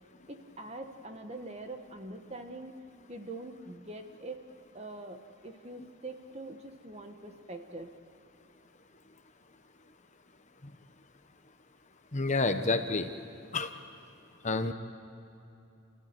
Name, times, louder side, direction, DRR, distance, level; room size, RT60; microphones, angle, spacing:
voice 1, 0.3-2.8 3.1-4.4 4.7-7.9, right 2 dB, 30° right, 6 dB, 1.4 m, -44 dB
voice 2, 12.1-13.1 13.5-13.7 14.4-14.7, left 3 dB, 35° left, 7 dB, 0.9 m, -28 dB
29.0 x 15.0 x 9.8 m, 2.8 s
head